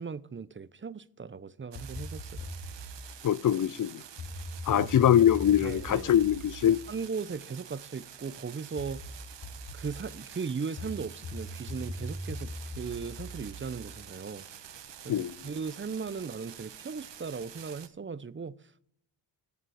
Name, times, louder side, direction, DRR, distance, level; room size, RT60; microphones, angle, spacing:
voice 1, 0.0-2.5 4.7-4.9 5.6-6.1 6.9-9.1 9.7-14.7 15.0-18.8, right 5 dB, 25° right, 0.7 m, -38 dB
sound 1, 1.7-3.0 4.2-7.9 8.8-10.0 10.8-14.7, equal, 60° left, 3.0 m, -41 dB
sound 2, 1.7-17.9, right 9 dB, 65° right, 1.1 m, -48 dB
voice 2, 3.2-4.0 4.7-6.8 15.1-15.3, left 10 dB, 45° left, 0.5 m, -23 dB
13.5 x 7.5 x 4.9 m
supercardioid pair, 50°, 47 cm